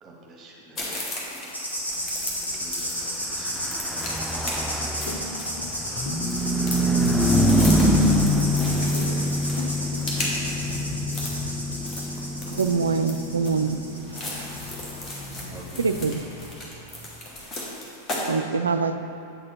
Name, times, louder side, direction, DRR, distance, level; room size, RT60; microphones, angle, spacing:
voice 1, 0.0-1.2 2.5-3.9 5.0-5.1 6.6-8.0 10.8-11.2 12.1-13.7 15.5-16.1, right 2 dB, 25° right, -1 dB, 1.3 m, -48 dB
sound 1, 0.8-18.3, left 1 dB, 25° left, 1.3 m, -36 dB
sound 2, 1.5-15.6 16.0-16.2, equal, 90° left, 1.1 m, -33 dB
Car passing by / Truck, 3.2-16.9, equal, ahead, 0.4 m, -26 dB
voice 2, 5.0-6.2 8.5-10.1, left 3 dB, 65° left, -1 dB, 0.6 m, -38 dB
voice 3, 12.5-14.5 15.8-16.3 18.3-19.0, right 5 dB, 75° right, 8 dB, 0.3 m, -25 dB
7.9 x 4.2 x 4.5 m, 2.7 s
figure-of-eight pair, 90°, 0 cm